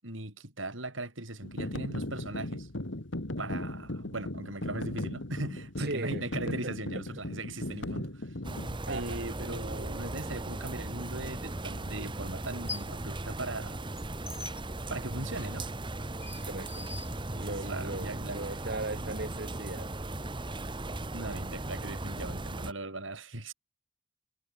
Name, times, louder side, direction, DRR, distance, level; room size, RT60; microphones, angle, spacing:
voice 1, 0.0-2.7 3.4-8.3 8.9-13.9 14.9-15.7 17.3-18.6 18.9-19.0 21.1-23.5, right 2 dB, 85° right, 7.8 m, -39 dB
sound 1, 1.4-8.7, left 1 dB, 70° left, 2.3 m, -37 dB
voice 2, 5.8-6.6 6.9-7.2 8.9-9.2 16.4-16.9 17.4-19.9, right 2 dB, 55° right, 2.7 m, -38 dB
sound 2, 8.4-22.7, right 2 dB, 25° right, 1.4 m, -37 dB
sound 3, 11.2-11.3 12.4-13.0 13.4-17.8, left 3 dB, 15° left, 3.8 m, -45 dB
head